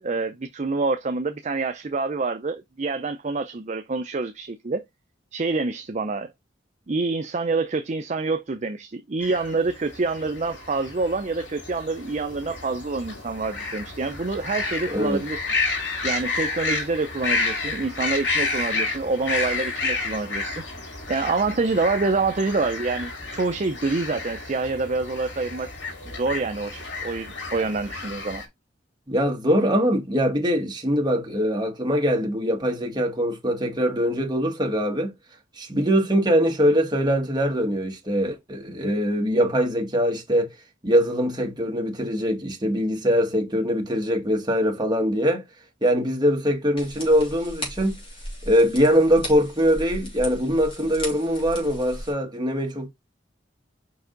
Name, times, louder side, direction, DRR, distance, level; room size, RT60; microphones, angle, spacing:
voice 1, 0.0-4.8 5.3-6.3 6.9-15.5 16.0-20.6 21.1-25.7 26.1-28.4, right 3 dB, 40° right, 0.5 m, -27 dB
sound 1, 9.2-28.4, left 3 dB, 75° left, 2.5 m, -31 dB
voice 2, 14.9-15.2 29.1-35.1 35.6-40.5 40.8-45.4 45.8-48.0 48.4-52.9, equal, 25° right, 1.7 m, -22 dB
sound 2, 46.8-52.1, left 1 dB, 30° left, 3.3 m, -37 dB
5.3 x 4.8 x 3.9 m
head